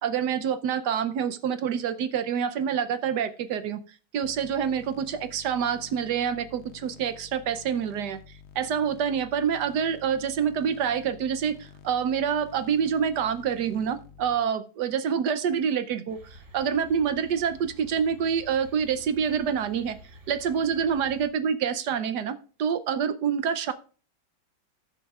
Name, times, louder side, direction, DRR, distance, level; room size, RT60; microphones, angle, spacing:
voice 1, 0.0-3.8 4.1-8.2 8.5-16.2 16.5-20.0 20.3-23.7, right 7 dB, 70° right, 11 dB, 1.2 m, -27 dB
sound 1, 4.2-14.4, left 7 dB, 60° left, 0.7 m, -50 dB
sound 2, 16.1-21.3, equal, 40° right, 2.3 m, -50 dB
18.5 x 7.1 x 2.4 m, 0.39 s
omnidirectional pair, 2.0 m